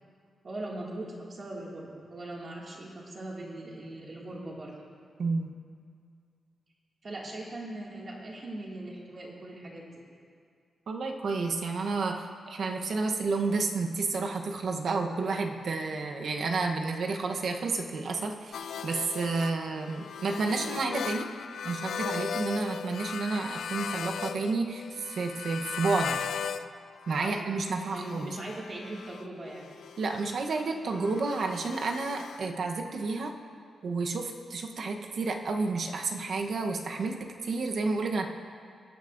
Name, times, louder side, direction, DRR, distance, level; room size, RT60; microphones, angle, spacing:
voice 1, 0.4-4.7 7.0-10.0 20.5-20.6 27.2-27.4 27.9-29.7, right 1 dB, 40° right, -3 dB, 2.1 m, -40 dB
voice 2, 5.2-5.5 10.9-21.3 21.6-26.2 27.1-28.3 30.0-33.3 33.8-38.3, right 3 dB, 60° right, 3 dB, 0.9 m, -30 dB
sound 1, 18.5-26.7 27.0-32.4, left 7 dB, 85° left, 0.3 m, -38 dB
20.5 x 9.5 x 2.6 m, 2.2 s
wide cardioid pair, 135°, 0 cm